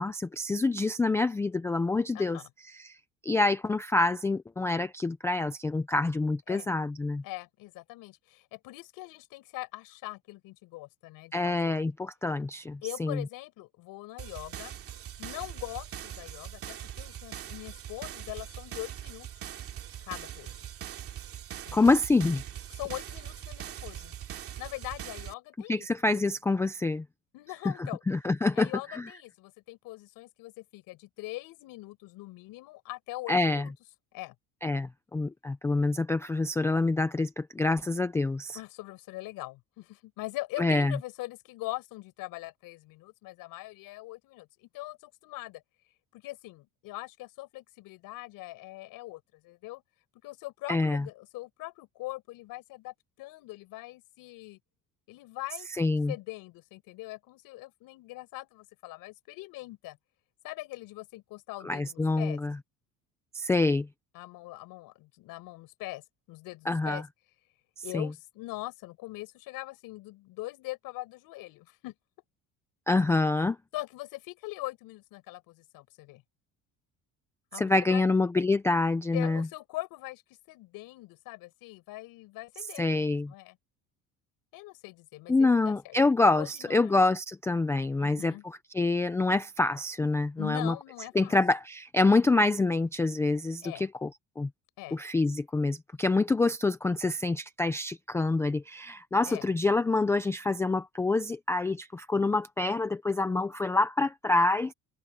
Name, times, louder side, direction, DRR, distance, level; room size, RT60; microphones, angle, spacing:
voice 1, 0.0-2.4 2.7-3.0 3.2-7.2 11.3-13.2 21.7-22.4 25.7-27.0 28.1-28.7 29.0-29.1 33.3-33.6 34.6-38.6 40.6-41.0 50.7-51.0 55.8-56.1 61.6-62.6 63.3-63.9 66.7-67.0 67.9-68.1 72.9-73.6 77.6-79.5 82.8-83.3 85.3-88.3 88.7-90.7 91.2-94.1 94.4-94.5 94.9-104.7, left 3 dB, 10° left, 0.4 m, -26 dB
voice 2, 2.1-2.5 6.5-6.7 7.2-11.8 12.8-14.8 15.2-19.5 20.0-20.6 21.7-21.8 22.8-25.9 27.3-28.0 28.5-33.7 34.1-34.3 38.5-45.6 46.1-49.8 50.2-54.6 55.1-55.7 56.1-60.0 60.4-62.4 64.1-67.0 67.8-71.9 73.7-76.2 77.5-78.1 79.1-80.2 80.5-83.6 84.5-86.0 86.4-87.0 88.0-88.4 90.4-91.4 93.6-93.9 94.8-95.0 99.2-99.5, left 19 dB, 70° left, 6.6 m, -42 dB
sound 1, 14.2-25.3, right 10 dB, 40° right, 2.6 m, -42 dB
cardioid pair, 170°, 35 cm